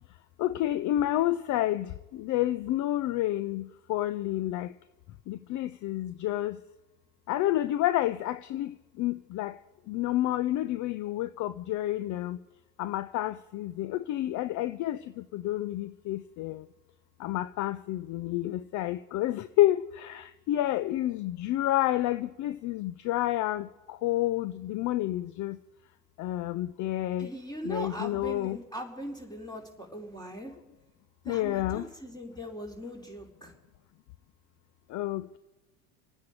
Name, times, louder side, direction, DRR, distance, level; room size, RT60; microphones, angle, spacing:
voice 1, 0.4-1.9 2.2-4.7 5.3-6.6 7.3-8.7 9.0-9.5 9.9-12.4 12.8-15.0 15.3-16.6 17.2-23.7 24.0-25.6 26.2-27.3 27.6-28.6 31.3-31.9 34.9-35.3, left 14 dB, 40° left, 0.5 m, -29 dB
voice 2, 27.2-30.5 31.2-33.5, equal, 10° left, 3.3 m, -40 dB
28.0 x 9.4 x 4.9 m
hypercardioid pair, 85°, 48 cm